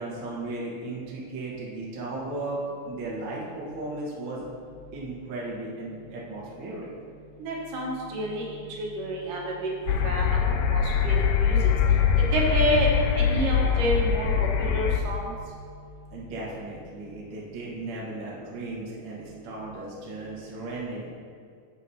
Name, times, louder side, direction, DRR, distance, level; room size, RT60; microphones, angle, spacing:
voice 1, 0.0-2.6 2.9-4.5 4.9-6.9 16.1-21.1, right 2 dB, 45° right, -5 dB, 1.7 m, -36 dB
voice 2, 7.4-10.4 10.7-11.6 12.3-12.9 13.1-15.3, right 1 dB, 75° right, -2 dB, 2.7 m, -29 dB
sound 1, 9.9-15.0, left 7 dB, 80° left, 1.8 m, -23 dB
10.5 x 7.4 x 2.8 m, 2.2 s
omnidirectional pair, 3.8 m